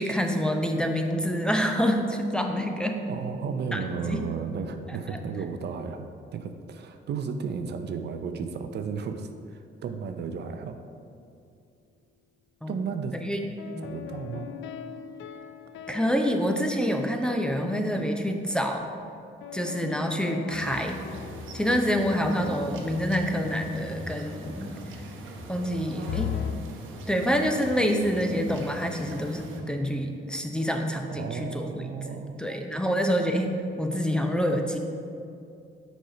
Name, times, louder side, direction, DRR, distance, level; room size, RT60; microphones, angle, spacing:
voice 1, 0.0-3.0 3.7-4.2 4.9-5.2 12.6-12.7 13.1-13.4 13.7-13.9 15.9-18.9 19.5-21.0 21.5-24.7 25.5-26.3 27.1-33.5 33.8-34.8, equal, 5° left, 3 dB, 0.6 m, -27 dB
voice 2, 3.1-10.8 12.7-13.2 13.8-14.5 31.1-32.5, right 5 dB, 60° right, 7 dB, 0.5 m, -34 dB
sound 1, 13.6-17.4 19.4-22.9 26.1-26.5, left 9 dB, 75° left, 0.4 m, -39 dB
sound 2, 20.5-29.6, right 1 dB, 80° right, 0.9 m, -41 dB
6.3 x 4.2 x 4.9 m, 2.5 s
cardioid pair, 90°, 20 cm